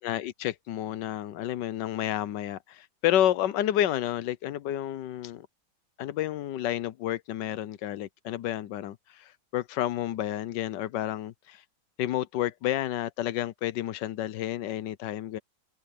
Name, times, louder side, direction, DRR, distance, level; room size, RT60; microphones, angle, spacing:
voice 1, 0.0-5.5 6.0-11.6 12.0-15.4, left 12 dB, 75° left, 1.4 m, -30 dB
omnidirectional pair, 1.9 m